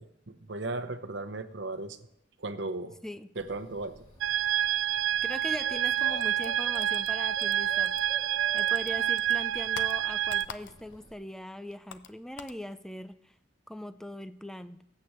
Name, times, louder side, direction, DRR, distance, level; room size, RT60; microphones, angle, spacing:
voice 1, 0.0-2.1 2.4-3.0 3.4-4.0, right 2 dB, 70° right, 9 dB, 0.9 m, -36 dB
Bird, 3.4-11.1, equal, 25° left, 2.7 m, -51 dB
sound 1, 4.2-10.5, right 11 dB, 85° right, 0.3 m, -28 dB
voice 2, 5.2-7.9 8.5-13.3 13.7-14.8, equal, 5° left, 12 dB, 0.4 m, -41 dB
sound 2, 6.2-8.3 8.6-11.1 11.3-12.6, left 7 dB, 90° left, 0.7 m, -46 dB
20.0 x 8.6 x 3.1 m, 0.86 s
head